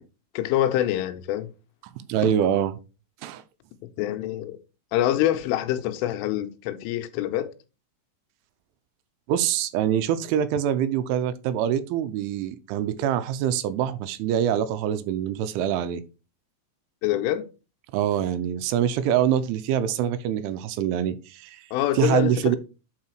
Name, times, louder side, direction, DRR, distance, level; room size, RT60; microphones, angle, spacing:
voice 1, 0.3-1.5 4.0-4.6 4.9-7.5 17.0-17.5 21.7-22.6, left 13 dB, 85° left, 3.3 m, -25 dB
voice 2, 2.0-2.7 3.2-3.4 9.3-16.0 17.9-21.6 21.9-22.6, right 9 dB, 80° right, 3.0 m, -25 dB
8.5 x 4.8 x 4.5 m
omnidirectional pair, 5.7 m